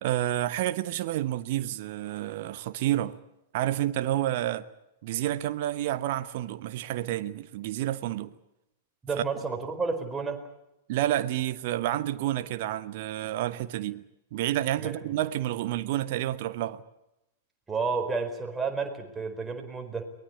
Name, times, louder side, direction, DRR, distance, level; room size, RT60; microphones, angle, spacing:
voice 1, 0.0-3.2 3.5-4.6 5.0-8.3 10.9-14.0 14.3-16.8, right 13 dB, 50° right, 1.1 m, -29 dB
voice 2, 9.0-10.4 14.8-15.2 17.7-20.0, right 4 dB, 10° right, 4.4 m, -31 dB
23.0 x 20.5 x 8.5 m
figure-of-eight pair, 100°, 0 cm